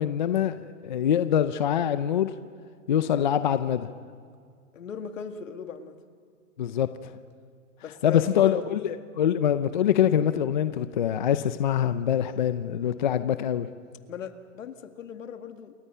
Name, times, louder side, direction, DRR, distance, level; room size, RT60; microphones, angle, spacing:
voice 1, 0.0-2.3 2.9-3.9 6.6-7.1 8.0-13.7, left 9 dB, 35° left, 11 dB, 0.6 m, -24 dB
voice 2, 4.7-5.9 7.8-8.6 14.1-15.7, left 7 dB, 80° left, 7 dB, 2.2 m, -37 dB
28.5 x 23.5 x 5.6 m, 2.1 s
hypercardioid pair, 175°, 39 cm